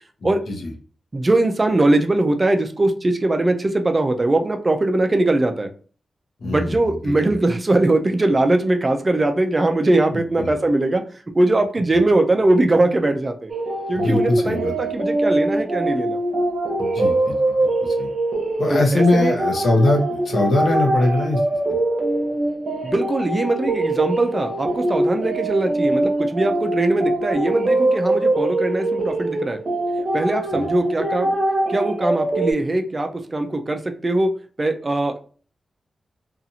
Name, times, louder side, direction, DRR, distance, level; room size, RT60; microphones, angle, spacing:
voice 1, 0.2-0.7 6.4-7.1 10.1-10.5 13.9-14.7 16.8-17.3 17.8-18.1 18.6-21.4 30.5-30.6, left 2 dB, 70° left, 2 dB, 0.8 m, -21 dB
voice 2, 1.1-5.7 6.4-11.0 11.3-13.5 13.9-16.2 18.7-19.3 22.8-29.6 30.1-31.3 31.7-34.3 34.6-35.2, right 2 dB, 30° right, 5 dB, 0.4 m, -21 dB
sound 1, 13.5-32.5, right 2 dB, 60° right, 0.8 m, -23 dB
2.7 x 2.4 x 2.7 m, 0.40 s
wide cardioid pair, 90°, 0 cm